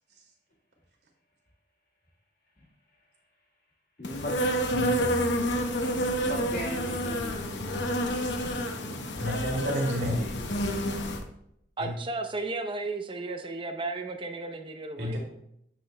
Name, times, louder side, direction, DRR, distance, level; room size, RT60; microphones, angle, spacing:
voice 1, 2.6-3.1 4.0-4.3 6.1-8.3 10.0-10.6, left 1 dB, 50° left, -5 dB, 1.7 m, -40 dB
Insect, 4.0-11.2, equal, 75° left, 0.9 m, -29 dB
voice 2, 8.9-10.3 11.8-11.9 15.0-15.2, equal, 65° right, -1 dB, 2.4 m, -30 dB
voice 3, 11.8-15.2, right 3 dB, 30° right, 6 dB, 0.7 m, -34 dB
9.1 x 8.1 x 2.2 m, 0.76 s
head